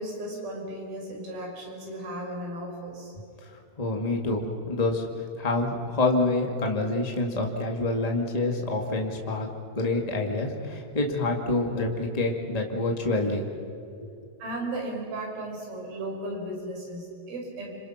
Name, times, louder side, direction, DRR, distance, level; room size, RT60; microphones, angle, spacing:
voice 1, 0.0-3.1 14.4-17.8, right 1 dB, 55° right, 0 dB, 6.6 m, -35 dB
voice 2, 3.8-5.1 5.4-9.5 9.7-13.5 14.0-14.1, left 2 dB, 45° left, 1 dB, 0.5 m, -27 dB
30.0 x 26.5 x 5.9 m, 2.5 s
omnidirectional pair, 5.0 m